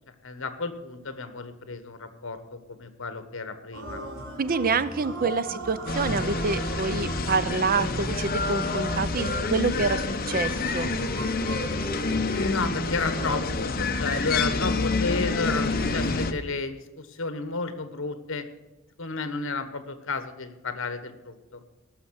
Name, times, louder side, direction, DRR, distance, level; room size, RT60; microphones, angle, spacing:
voice 1, 0.2-4.0 12.3-18.4 19.0-21.6, left 3 dB, 65° left, 10 dB, 1.4 m, -32 dB
sound 1, 3.7-13.4, right 1 dB, 75° right, 3.7 m, -38 dB
voice 2, 4.4-10.9, right 4 dB, 45° right, 15 dB, 0.6 m, -27 dB
sound 2, 5.9-16.3, left 3 dB, 45° left, 0.9 m, -28 dB
18.0 x 6.6 x 6.5 m, 1.1 s
head